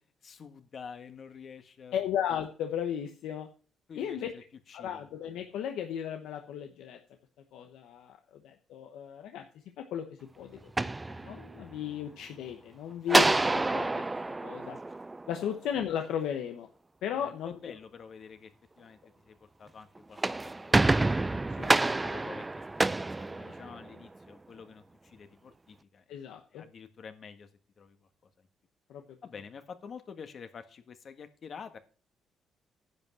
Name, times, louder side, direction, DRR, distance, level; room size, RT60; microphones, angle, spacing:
voice 1, 0.2-2.0 3.9-4.4 4.7-5.1 13.0-13.1 15.4-15.5 17.1-19.0 19.2-21.6 22.0-26.2 26.5-27.5 27.8-28.1 28.4-28.5 29.2-31.8, left 6 dB, 50° left, 8 dB, 1.5 m, -48 dB
voice 2, 1.9-3.5 4.0-4.3 4.7-7.0 7.5-9.4 9.8-10.1 10.4-10.5 10.8-14.0 14.4-14.8 15.3-16.7 17.0-17.7 21.5-21.7 26.1-26.7 28.9-29.0, left 9 dB, 85° left, 5 dB, 1.1 m, -35 dB
sound 1, 10.6-11.8 13.1-15.6 20.0-24.1, right 2 dB, 20° right, 0.4 m, -28 dB
10.5 x 5.5 x 7.6 m, 0.40 s
cardioid pair, 90°, 0 cm